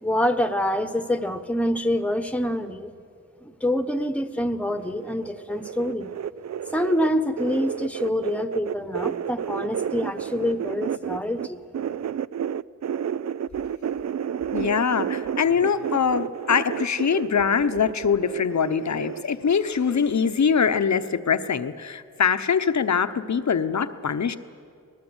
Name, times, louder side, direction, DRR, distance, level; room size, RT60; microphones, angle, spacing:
voice 1, 0.0-2.9 3.4-6.1 6.7-11.6, left 1 dB, 5° left, 10 dB, 1.2 m, -26 dB
sound 1, 4.8-11.5 11.7-20.8 21.0-21.5 21.8-21.9, right 8 dB, 55° right, 0.5 m, -31 dB
voice 2, 14.5-24.4, left 6 dB, 55° left, 11 dB, 1.0 m, -23 dB
22.5 x 20.0 x 8.1 m, 2.3 s
wide cardioid pair, 75°, 33 cm